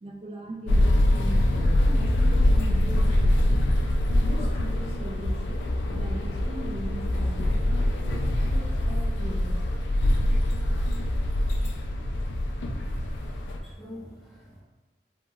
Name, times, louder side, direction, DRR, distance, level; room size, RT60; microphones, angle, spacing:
voice 1, 0.0-3.6 4.2-5.6 5.9-8.3 8.5-9.6, right 1 dB, 30° right, -1 dB, 0.3 m, -39 dB
sound 1, 0.7-13.6, left 1 dB, 85° left, 0.3 m, -24 dB
sound 2, 2.4-8.2, equal, 55° right, 1.4 m, -32 dB
voice 2, 12.8-14.6, equal, ahead, -9 dB, 0.7 m, -45 dB
2.9 x 2.8 x 2.3 m, 1.3 s
head